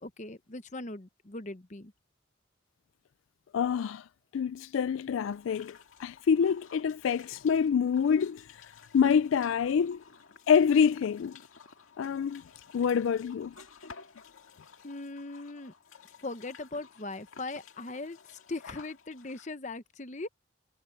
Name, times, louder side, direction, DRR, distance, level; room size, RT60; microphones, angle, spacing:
voice 1, 0.0-1.9 14.8-15.7 16.2-20.3, left 2 dB, 35° left, 0.9 m, -40 dB
voice 2, 3.5-4.1 4.3-8.6 8.9-10.0 10.5-11.3 12.0-12.4 12.7-13.5, left 7 dB, 75° left, 0.3 m, -26 dB
sound 1, 5.1-19.5, left 6 dB, 90° left, 2.0 m, -53 dB
head